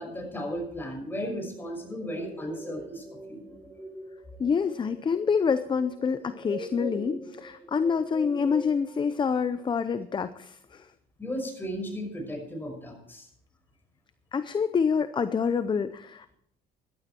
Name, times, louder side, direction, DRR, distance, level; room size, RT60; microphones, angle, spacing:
voice 1, 0.0-3.4 11.2-13.3, equal, 10° left, 2 dB, 5.6 m, -35 dB
sound 1, 1.8-9.2, right 1 dB, 15° right, 4.3 m, -42 dB
voice 2, 4.4-10.9 14.3-16.4, left 6 dB, 30° left, 12 dB, 0.7 m, -27 dB
15.5 x 12.0 x 4.5 m, 0.71 s
cardioid pair, 110°, 17 cm